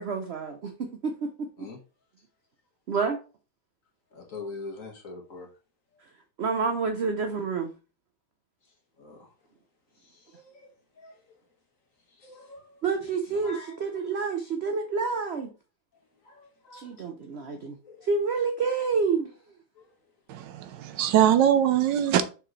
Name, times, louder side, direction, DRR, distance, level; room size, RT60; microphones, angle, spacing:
voice 1, 0.0-1.7 2.9-3.2 6.4-7.7 12.8-15.5 16.7-17.8 18.1-19.3, right 4 dB, 60° right, 0.6 m, -28 dB
voice 2, 4.1-5.5 5.9-6.0 8.6-9.3 9.9-11.3 12.1-13.8 15.9-18.1 19.7-19.9, left 3 dB, 50° left, 1.8 m, -45 dB
voice 3, 20.3-22.2, right 10 dB, 80° right, 1.3 m, -22 dB
6.5 x 4.7 x 3.1 m
omnidirectional pair, 1.9 m